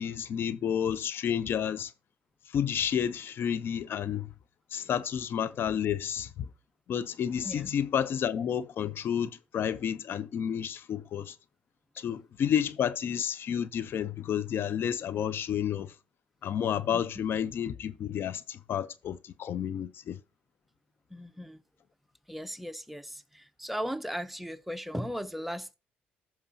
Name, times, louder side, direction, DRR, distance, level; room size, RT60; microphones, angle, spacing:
voice 1, 0.0-1.9 2.5-4.3 4.7-6.3 6.9-11.3 12.0-15.9 16.4-20.2, left 9 dB, 65° left, 0.6 m, -30 dB
voice 2, 21.1-21.6 22.3-25.7, equal, 5° right, 0.8 m, -37 dB
14.5 x 6.1 x 2.7 m
supercardioid pair, 70°, 4 cm